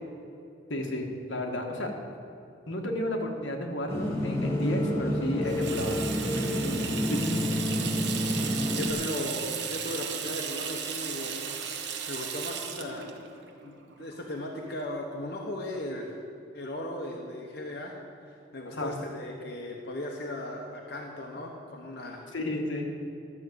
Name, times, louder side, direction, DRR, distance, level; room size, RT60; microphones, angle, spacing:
voice 1, 0.7-1.9 2.7-6.0 7.1-7.4 18.7-18.9 22.3-22.9, left 1 dB, 80° left, 2 dB, 1.6 m, -32 dB
sound 1, 3.9-8.9, equal, 15° left, 1.4 m, -29 dB
Water tap faucet / Sink (filling or washing), 5.4-14.7, right 7 dB, 65° right, 1.1 m, -36 dB
voice 2, 8.7-13.1 13.6-16.2 16.5-18.0 18.2-22.2, left 1 dB, 55° left, 0 dB, 1.0 m, -37 dB
12.5 x 6.5 x 7.9 m, 2.7 s
head